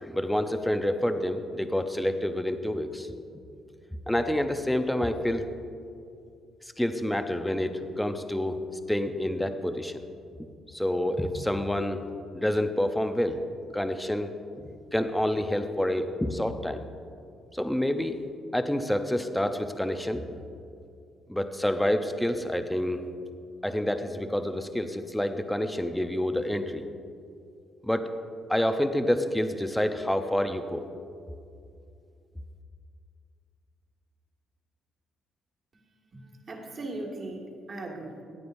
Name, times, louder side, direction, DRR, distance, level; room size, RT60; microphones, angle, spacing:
voice 1, 0.0-3.1 4.1-5.5 6.8-10.0 10.7-12.0 12.3-13.4 13.7-14.3 14.9-16.8 17.5-18.2 18.5-20.4 21.3-23.1 23.6-26.8 27.8-28.1 28.5-30.9, left 1 dB, 5° left, 8 dB, 0.6 m, -28 dB
voice 2, 36.5-38.2, right 2 dB, 40° right, 0 dB, 1.9 m, -38 dB
16.5 x 9.2 x 2.6 m, 2.4 s
cardioid pair, 90°, 0 cm